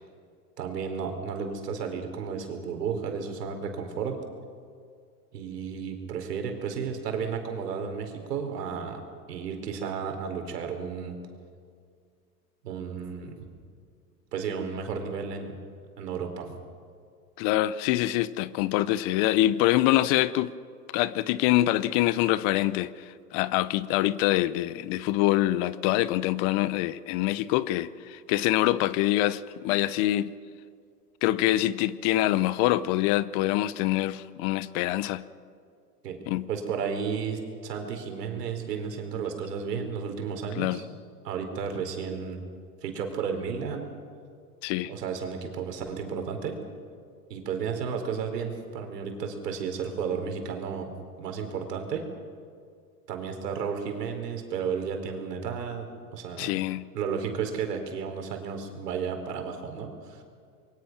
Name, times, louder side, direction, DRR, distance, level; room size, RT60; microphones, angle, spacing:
voice 1, 0.6-4.2 5.3-9.0 9.3-11.2 12.6-13.3 14.3-15.6 16.0-16.5 36.0-36.2 36.5-40.9 41.2-42.4 42.8-43.9 44.9-46.6 47.3-50.9 51.2-52.1 53.1-55.9 56.1-56.5 56.9-60.2, right 6 dB, 80° right, 4.3 m, -33 dB
voice 2, 17.4-20.5 20.9-22.9 23.3-30.3 31.2-35.2 36.3-36.4 40.6-40.8 44.6-44.9 56.4-56.8, left 15 dB, 45° left, 0.9 m, -25 dB
26.0 x 22.5 x 6.1 m
hypercardioid pair, 105°, 48 cm